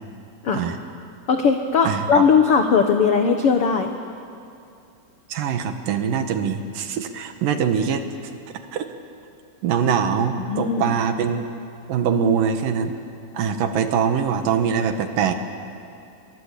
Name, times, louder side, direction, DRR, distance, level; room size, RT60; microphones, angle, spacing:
voice 1, 1.3-3.9 10.4-11.0, left 5 dB, 80° left, 5 dB, 1.2 m, -19 dB
voice 2, 1.8-2.2 5.3-8.0 8.7-8.9 9.6-11.5 11.9-12.9 13.3-15.4, right 7 dB, 65° right, 7 dB, 2.8 m, -23 dB
29.5 x 22.5 x 8.3 m, 2.6 s
omnidirectional pair, 4.4 m